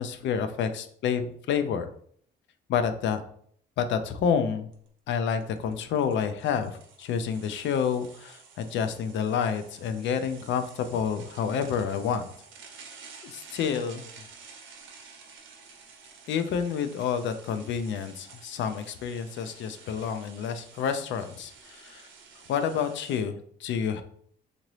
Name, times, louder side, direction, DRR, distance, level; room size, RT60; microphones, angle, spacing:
voice 1, 0.0-1.9 2.7-3.2 3.8-4.7 5.1-12.3 13.2-14.1 16.3-22.0 22.5-24.0, left 7 dB, 70° left, 9 dB, 0.4 m, -29 dB
sound 1, 4.7-4.9 5.4-23.2, right 5 dB, 70° right, 0.7 m, -51 dB
2.9 x 2.6 x 3.0 m, 0.62 s
cardioid pair, 90°, 20 cm